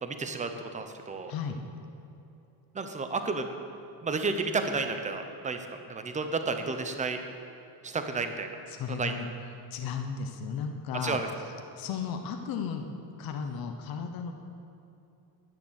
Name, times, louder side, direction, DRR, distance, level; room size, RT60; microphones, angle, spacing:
voice 1, 0.0-1.3 2.7-3.5 4.0-7.2 7.8-8.5 8.9-9.1 11.0-11.3, right 4 dB, 15° right, 7 dB, 0.7 m, -32 dB
voice 2, 1.3-1.6 8.7-9.3 9.7-11.2 11.8-12.8 13.2-14.3, left 6 dB, 55° left, 4 dB, 0.9 m, -34 dB
10.5 x 9.8 x 6.4 m, 2.8 s
cardioid pair, 170°, 43 cm